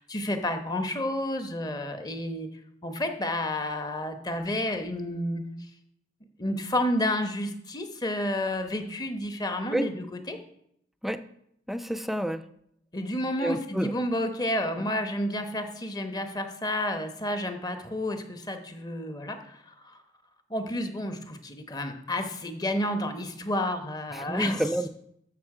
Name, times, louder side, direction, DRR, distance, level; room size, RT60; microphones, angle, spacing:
voice 1, 0.0-2.5 2.8-5.4 6.4-10.4 12.9-20.0 20.5-24.6, left 1 dB, 25° left, 7 dB, 1.0 m, -30 dB
voice 2, 11.7-12.4 13.4-13.9 24.1-24.9, right 1 dB, ahead, 10 dB, 0.4 m, -29 dB
13.0 x 6.5 x 4.9 m, 0.74 s
head